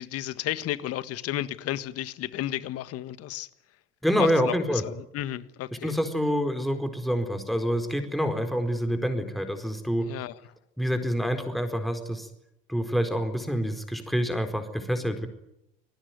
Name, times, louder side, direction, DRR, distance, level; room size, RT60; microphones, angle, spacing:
voice 1, 0.0-3.5 4.2-6.0 10.0-10.4, left 13 dB, 55° left, 1.6 m, -33 dB
voice 2, 4.0-4.8 5.8-10.1 10.8-12.3 12.7-15.3, equal, ahead, 4.4 m, -27 dB
28.0 x 19.0 x 9.5 m
hypercardioid pair, 70°, 29 cm